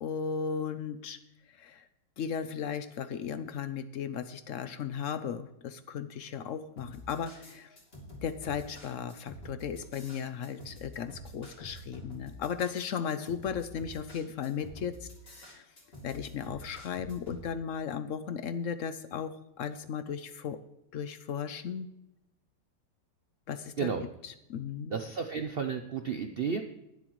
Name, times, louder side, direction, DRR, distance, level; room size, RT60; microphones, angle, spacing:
voice 1, 0.0-1.2 1.5-1.8 2.2-7.7 8.2-15.6 16.0-20.6 20.9-21.9 23.5-23.9 24.2-25.0, left 7 dB, 65° left, 12 dB, 0.7 m, -36 dB
sound 1, 6.8-17.4, equal, 35° left, 2.9 m, -47 dB
voice 2, 24.9-26.6, right 6 dB, 80° right, 6 dB, 0.5 m, -32 dB
19.5 x 7.7 x 3.1 m, 0.85 s
omnidirectional pair, 1.9 m